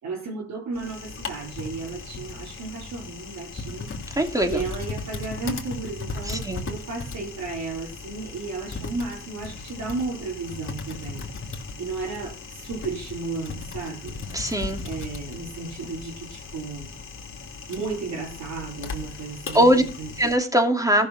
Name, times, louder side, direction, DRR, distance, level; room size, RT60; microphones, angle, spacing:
voice 1, 0.0-3.9 4.4-11.2 11.8-14.2 14.8-16.9 17.7-20.1, right 3 dB, 65° right, -2 dB, 3.8 m, -33 dB
Typing, 0.7-20.4, left 4 dB, 45° left, 2.9 m, -37 dB
voice 2, 4.2-4.6 6.3-6.6 14.3-14.8 19.5-19.8 20.2-21.1, equal, 10° right, 4 dB, 2.7 m, -21 dB
14.5 x 6.5 x 5.8 m, 0.35 s
cardioid pair, 90°, 30 cm